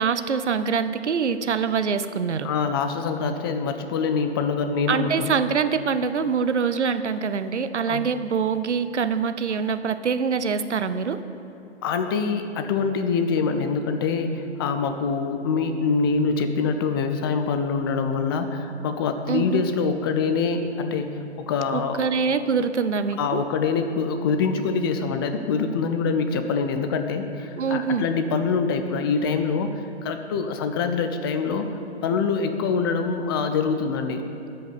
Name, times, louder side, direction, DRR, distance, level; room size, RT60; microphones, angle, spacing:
voice 1, 0.0-2.5 4.9-11.2 19.3-19.6 21.7-23.4 27.6-28.1, right 6 dB, 80° right, 11 dB, 0.8 m, -24 dB
voice 2, 2.4-5.3 7.9-8.1 11.8-22.1 23.2-31.7 32.0-34.2, left 5 dB, 20° left, 7 dB, 0.5 m, -25 dB
13.0 x 5.5 x 8.6 m, 2.8 s
figure-of-eight pair, 125°, 34 cm